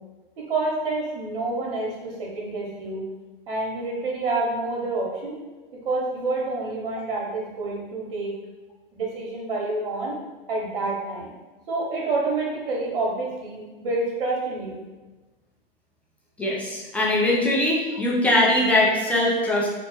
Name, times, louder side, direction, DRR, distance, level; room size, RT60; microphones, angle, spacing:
voice 1, 0.4-3.0 3.5-5.4 5.8-8.3 8.9-10.1 10.5-11.3 11.7-14.8, right 3 dB, 65° right, -2 dB, 1.1 m, -28 dB
voice 2, 16.4-19.7, left 1 dB, 5° left, -4 dB, 0.4 m, -21 dB
3.0 x 2.0 x 3.2 m, 1.2 s
hypercardioid pair, 120°, 29 cm